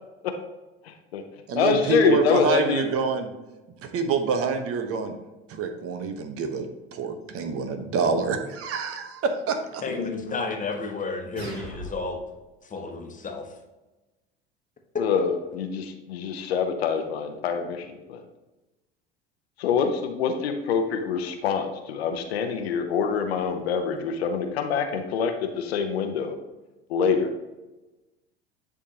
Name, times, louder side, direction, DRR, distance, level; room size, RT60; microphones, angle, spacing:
voice 1, 0.8-1.2 1.5-2.8 9.9-10.6 15.0-18.2 19.6-26.4 26.9-27.3, left 6 dB, 75° left, 6 dB, 0.8 m, -26 dB
voice 2, 1.5-3.3 3.8-5.1 5.5-9.8, right 5 dB, 45° right, 6 dB, 1.0 m, -27 dB
voice 3, 9.8-12.2 12.7-13.5, left 3 dB, 25° left, 3 dB, 1.3 m, -32 dB
sound 1, 11.4-12.4, right 1 dB, 85° right, 1.2 m, -39 dB
9.9 x 3.6 x 2.8 m, 1.1 s
hypercardioid pair, 70°, 31 cm